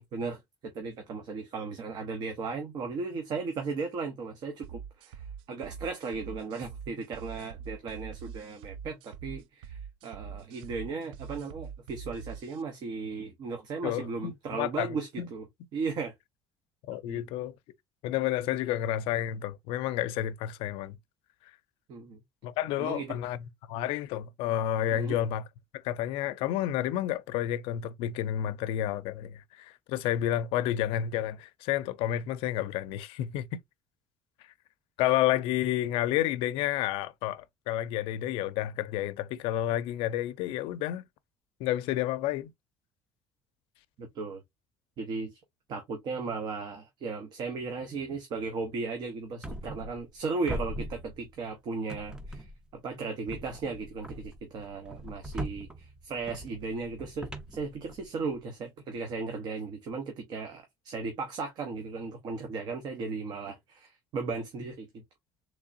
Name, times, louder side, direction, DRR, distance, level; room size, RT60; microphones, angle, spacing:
voice 1, 0.0-15.5 15.7-16.1 16.9-17.3 21.9-22.2 22.8-23.2 24.9-25.2 44.0-44.4 45.0-45.4 45.7-65.0, right 4 dB, 50° right, 0.8 m, -36 dB
sound 1, 4.6-12.6, right 7 dB, 85° right, 0.4 m, -44 dB
voice 2, 13.8-15.3 16.9-17.5 18.0-21.0 22.4-25.4 25.7-33.6 35.0-41.0 41.6-42.5, left 12 dB, 90° left, 0.4 m, -30 dB
sound 2, 49.4-50.2 50.5-51.5 51.9-52.7 53.3-58.4, right 1 dB, 10° right, 0.5 m, -41 dB
3.6 x 3.2 x 2.5 m
cardioid pair, 160°, 9 cm